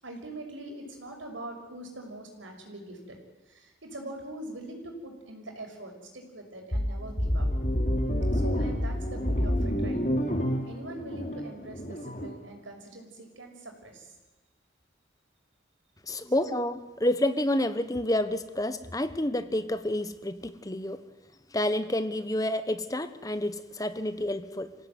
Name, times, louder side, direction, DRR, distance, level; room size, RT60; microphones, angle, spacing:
voice 1, 0.0-3.2 3.5-7.5 8.3-10.0 10.6-14.1 16.4-16.6, right 1 dB, 90° right, 3 dB, 6.1 m, -43 dB
sound 1, 6.7-12.3, equal, 40° left, 3.2 m, -28 dB
voice 2, 16.1-21.0 21.5-24.7, left 1 dB, 20° left, 11 dB, 1.2 m, -29 dB
27.0 x 17.0 x 9.5 m, 1.2 s
head